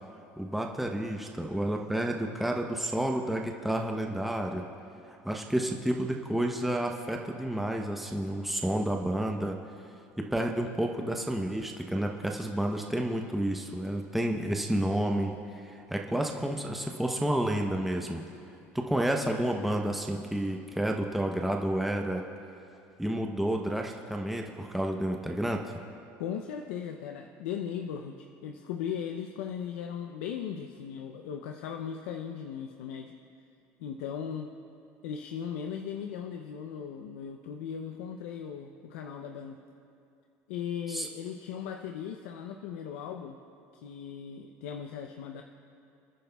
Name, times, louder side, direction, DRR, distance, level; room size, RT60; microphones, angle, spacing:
voice 1, 0.4-4.6 5.2-9.6 10.2-18.2 18.7-22.2 23.0-25.6 40.9-41.1, right 1 dB, ahead, 2 dB, 0.8 m, -30 dB
voice 2, 26.2-33.2 33.8-34.5 35.0-39.6 40.5-43.4 43.8-45.4, left 8 dB, 90° left, 4 dB, 0.6 m, -38 dB
27.0 x 10.0 x 2.3 m, 2.6 s
supercardioid pair, 95°, 7 cm